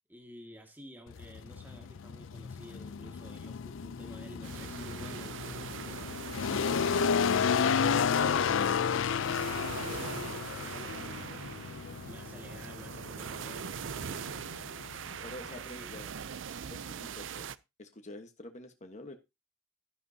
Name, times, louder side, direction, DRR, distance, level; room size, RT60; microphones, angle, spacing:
voice 1, 0.1-6.3 9.4-11.3 12.0-14.2 15.5-16.2, equal, 10° right, 2.0 m, -51 dB
sound 1, 1.1-15.5, left 6 dB, 80° left, 0.5 m, -32 dB
sound 2, 4.4-17.6, right 7 dB, 70° right, 0.5 m, -42 dB
voice 2, 15.2-16.1 16.6-17.5 17.8-19.1, left 1 dB, 40° left, 1.3 m, -47 dB
12.0 x 10.5 x 2.8 m
head